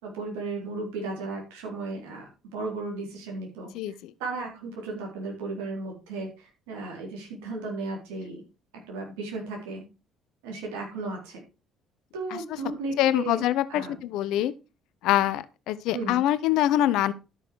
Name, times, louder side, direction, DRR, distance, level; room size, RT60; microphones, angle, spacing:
voice 1, 0.0-2.2 2.5-8.4 8.9-9.8 10.4-11.4 12.1-13.4 13.7-14.0 15.9-16.2, right 3 dB, 70° right, 3.9 m, -35 dB
voice 2, 3.7-4.1 12.3-12.4 13.0-14.5 15.0-17.1, left 13 dB, 65° left, 0.8 m, -24 dB
12.5 x 6.9 x 4.7 m
figure-of-eight pair, 50°, 0 cm